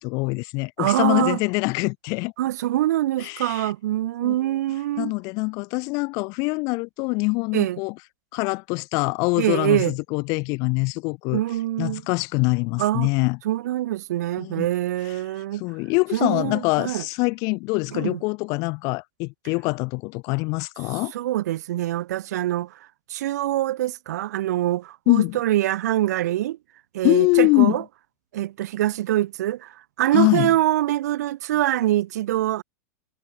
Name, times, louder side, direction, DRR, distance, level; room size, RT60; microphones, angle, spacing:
voice 1, 0.0-2.3 3.2-3.7 4.2-4.3 5.0-7.9 8.3-11.4 11.8-13.4 14.4-14.7 15.5-21.1 25.1-25.4 27.0-27.8 30.1-30.5, left 29 dB, 40° left, 6.7 m, -24 dB
voice 2, 0.8-1.4 2.4-5.1 7.5-7.8 9.4-9.9 11.3-12.0 12.8-13.1 13.4-15.6 16.1-17.0 17.9-18.2 21.1-22.8 23.1-26.6 26.9-27.8 28.3-32.6, right 14 dB, 80° right, 5.9 m, -24 dB
supercardioid pair, 165°, 9 cm